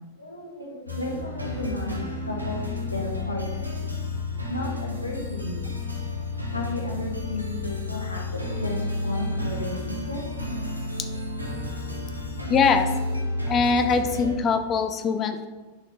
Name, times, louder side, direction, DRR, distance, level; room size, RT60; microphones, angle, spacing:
voice 1, 0.2-3.8 4.5-5.6 6.5-10.2, left 1 dB, 85° left, -3 dB, 1.0 m, -33 dB
sound 1, 0.9-14.4, left 2 dB, 85° right, 1.0 m, -31 dB
voice 2, 12.5-12.9 13.5-15.5, left 5 dB, 30° left, 8 dB, 0.6 m, -22 dB
6.2 x 4.3 x 4.8 m, 1.2 s
figure-of-eight pair, 90°, 0 cm